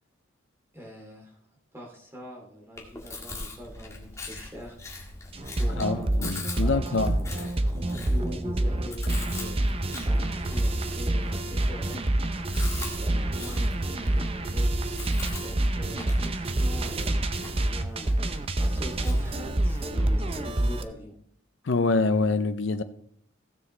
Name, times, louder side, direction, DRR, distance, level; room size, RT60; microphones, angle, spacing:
voice 1, 0.7-1.4 1.7-5.0 5.3-7.1 8.1-9.7 10.0-12.0 13.0-14.7 15.4-18.2 18.6-21.1, equal, 10° right, 2.6 m, -43 dB
Chewing mastication, 2.8-20.8, left 2 dB, 15° left, 1.7 m, -43 dB
sound 1, 5.3-20.8, right 1 dB, 25° right, 0.6 m, -27 dB
voice 2, 5.8-7.2 21.7-22.8, left 3 dB, 60° left, 0.6 m, -25 dB
15.5 x 7.4 x 3.3 m
head